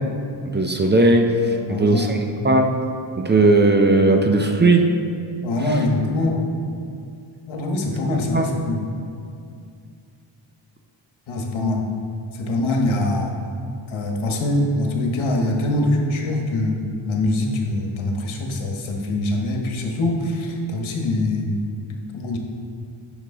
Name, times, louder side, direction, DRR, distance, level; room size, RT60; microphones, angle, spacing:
voice 1, 0.5-2.2 2.4-2.8 3.2-5.0 8.3-8.5, right 2 dB, 25° right, 3 dB, 0.4 m, -17 dB
voice 2, 1.7-2.1 5.4-6.4 7.5-8.9 11.3-11.9 12.3-13.4 13.9-21.5 22.1-22.4, left 2 dB, 85° left, 1 dB, 1.3 m, -23 dB
10.0 x 6.3 x 3.7 m, 2.4 s
wide cardioid pair, 165°, 46 cm